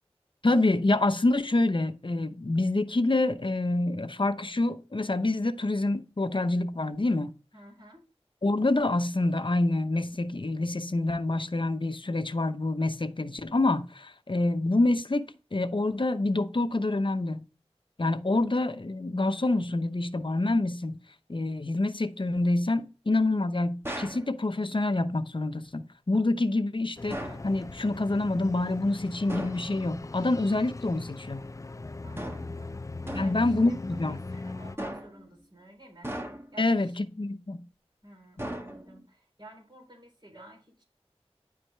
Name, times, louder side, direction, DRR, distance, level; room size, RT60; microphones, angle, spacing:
voice 1, 0.4-7.3 8.4-15.3 15.5-17.4 18.0-21.0 21.3-31.5 33.1-34.2 36.6-37.6, left 2 dB, 50° left, 0.8 m, -27 dB
voice 2, 7.5-8.0 32.0-32.8 33.1-36.1 36.5-37.1 38.0-40.8, right 1 dB, 45° right, 3.8 m, -52 dB
sound 1, 23.8-24.3 27.1-27.5 29.3-29.7 32.2-32.6 33.1-33.5 34.8-35.3 36.0-36.6 38.4-39.1, right 1 dB, 20° right, 1.4 m, -37 dB
sound 2, 27.0-34.8, left 3 dB, 30° left, 0.3 m, -40 dB
10.0 x 4.8 x 3.4 m
wide cardioid pair, 45°, 11 cm